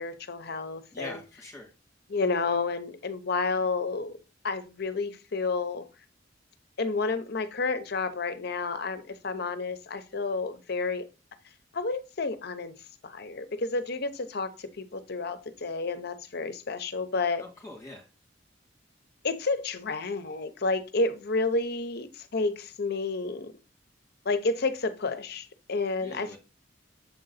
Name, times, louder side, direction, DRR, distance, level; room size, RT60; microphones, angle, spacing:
voice 1, 0.0-1.2 2.1-4.2 4.4-5.9 6.8-11.1 11.7-12.7 13.0-17.4 19.2-23.5 24.2-26.4, left 3 dB, 60° left, 0.7 m, -30 dB
voice 2, 0.9-1.7 17.4-18.1 26.0-26.4, left 2 dB, 15° left, 2.2 m, -43 dB
7.1 x 3.9 x 4.0 m
head